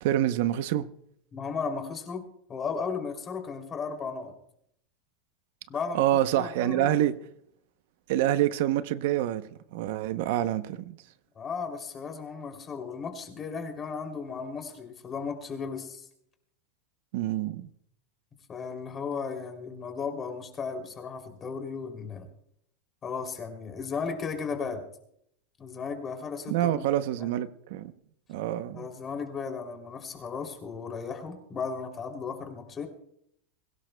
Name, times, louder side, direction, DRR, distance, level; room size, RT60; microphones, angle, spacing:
voice 1, 0.0-0.9 5.9-7.1 8.1-9.4 9.7-11.0 17.1-17.7 26.5-27.9 28.3-28.9, right 12 dB, 65° right, 0.7 m, -26 dB
voice 2, 1.3-2.2 2.5-4.3 5.7-6.0 6.3-6.9 11.3-16.1 18.5-22.3 23.0-24.8 25.6-26.8 27.2-27.3 28.7-32.9, left 5 dB, 20° left, 2.9 m, -35 dB
22.5 x 17.0 x 2.2 m
supercardioid pair, 155°, 0 cm